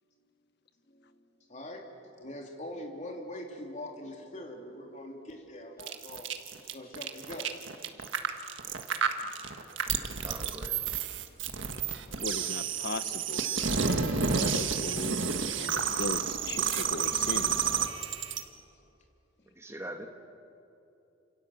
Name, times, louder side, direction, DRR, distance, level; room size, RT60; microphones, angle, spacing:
voice 1, 0.9-1.9 2.2-6.3 6.6-7.6 7.9-8.0 9.2-9.4 11.0-12.0 15.8-15.9 18.3-18.5 19.7-19.8, left 1 dB, 40° left, 2 dB, 3.3 m, -44 dB
sound 1, 5.8-18.4, right 6 dB, 70° right, 1.6 m, -30 dB
voice 2, 10.2-10.8 19.6-20.1, right 1 dB, 15° right, 4 dB, 1.8 m, -42 dB
voice 3, 12.2-13.5 13.9-15.3 15.6-17.7, left 3 dB, 55° left, 12 dB, 1.0 m, -38 dB
29.0 x 27.0 x 7.5 m, 2.8 s
head